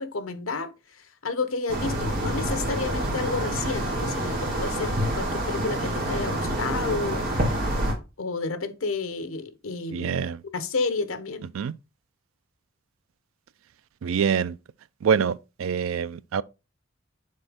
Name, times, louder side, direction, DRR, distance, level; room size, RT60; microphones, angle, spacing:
voice 1, 0.0-7.3 8.2-10.2 10.4-11.5, left 4 dB, 90° left, 0.9 m, -31 dB
sound 1, 1.7-7.9, right 1 dB, 45° right, 2.3 m, -27 dB
voice 2, 9.9-10.4 11.5-11.7 14.0-14.6 15.0-16.4, right 7 dB, 85° right, 0.4 m, -25 dB
6.5 x 4.2 x 3.5 m
head